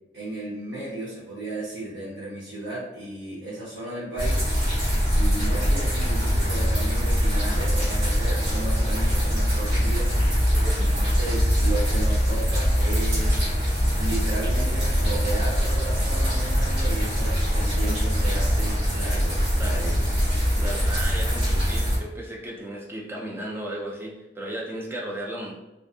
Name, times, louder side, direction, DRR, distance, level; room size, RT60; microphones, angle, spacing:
voice 1, 0.1-4.5 5.1-10.1 10.7-13.5 13.9-20.0, right 2 dB, 70° right, -10 dB, 0.8 m, -34 dB
sound 1, 4.2-22.0, equal, 90° right, 1.2 m, -23 dB
voice 2, 10.5-10.9 19.6-20.1 20.6-25.5, right 1 dB, 15° right, -2 dB, 0.3 m, -35 dB
2.5 x 2.3 x 2.4 m, 1.0 s
head